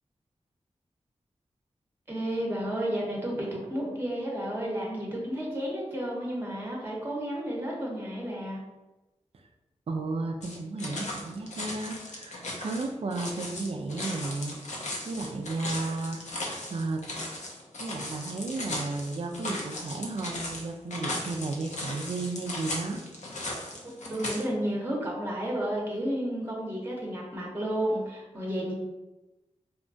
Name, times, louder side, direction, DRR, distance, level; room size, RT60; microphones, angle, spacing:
voice 1, 2.1-8.6 23.8-28.7, right 1 dB, 20° right, -3 dB, 0.8 m, -32 dB
voice 2, 9.9-14.6 15.0-17.0 17.8-23.0, right 3 dB, 55° right, 4 dB, 0.4 m, -33 dB
sound 1, 10.4-24.4, left 1 dB, 80° left, 0.5 m, -37 dB
2.8 x 2.2 x 2.6 m, 1.1 s
cardioid pair, 45°, 12 cm